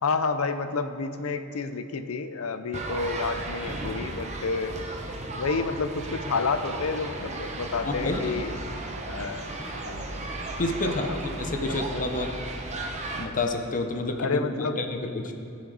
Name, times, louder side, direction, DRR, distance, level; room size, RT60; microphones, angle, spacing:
voice 1, 0.0-4.8 5.3-8.6 9.1-9.5 9.9-10.1 10.8-11.2 11.6-12.0 14.2-14.8, left 4 dB, 80° left, 9 dB, 0.6 m, -30 dB
sound 1, 2.7-13.3, right 2 dB, 35° right, 0.9 m, -35 dB
voice 2, 7.8-8.4 10.6-12.3 13.1-14.3 14.8-15.3, left 2 dB, 40° left, 4 dB, 0.7 m, -29 dB
18.0 x 6.3 x 4.0 m, 2.7 s
head